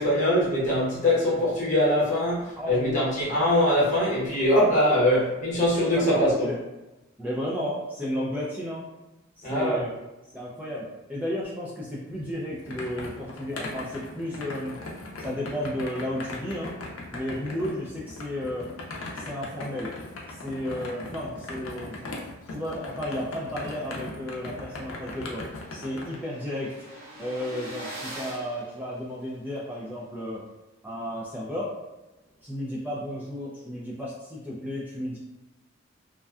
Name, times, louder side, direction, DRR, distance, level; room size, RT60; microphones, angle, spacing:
voice 1, 0.0-6.5 9.4-9.9, left 1 dB, 40° left, -8 dB, 0.9 m, -23 dB
voice 2, 2.6-3.1 5.0-5.2 5.9-6.6 7.2-8.8 9.4-9.9 10.3-14.8 15.2-16.7 17.1-18.7 19.1-19.9 20.3-22.0 22.5-25.4 25.7-26.7 27.2-30.4 30.8-31.7 32.4-35.2, left 1 dB, 10° right, -7 dB, 0.3 m, -33 dB
sound 1, 12.1-26.1, left 2 dB, 85° left, 0.5 m, -39 dB
sound 2, 24.8-29.6, right 1 dB, 45° right, 1.1 m, -43 dB
2.5 x 2.2 x 2.3 m, 1.0 s
head